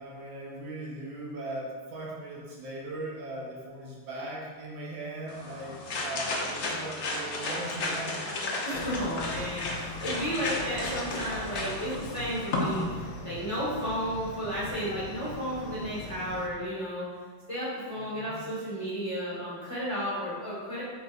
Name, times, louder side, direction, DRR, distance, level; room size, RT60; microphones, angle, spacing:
voice 1, 0.0-8.4 18.0-18.4, right 2 dB, 70° right, -4 dB, 1.7 m, -39 dB
sound 1, 5.3-12.8, left 2 dB, 55° left, 0.8 m, -33 dB
voice 2, 8.6-17.0 17.5-20.8, equal, 15° left, -8 dB, 1.5 m, -33 dB
sound 2, 8.7-16.5, left 2 dB, 80° left, 1.6 m, -41 dB
7.3 x 5.4 x 2.6 m, 1.5 s
omnidirectional pair, 2.3 m